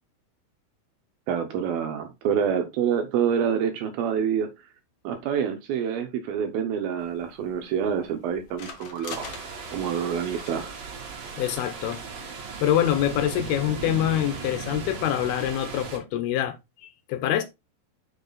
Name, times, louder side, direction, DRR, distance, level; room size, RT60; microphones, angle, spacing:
voice 1, 1.3-4.5 5.0-9.3 9.7-10.8, right 8 dB, 75° right, 2.4 m, -27 dB
sound 1, 7.0-13.8, left 4 dB, 60° left, 1.7 m, -46 dB
sound 2, 9.1-16.0, right 5 dB, 55° right, 2.1 m, -37 dB
voice 2, 11.4-12.0 12.6-16.6 16.8-17.4, left 11 dB, 80° left, 2.7 m, -25 dB
6.2 x 5.4 x 3.9 m
omnidirectional pair, 4.8 m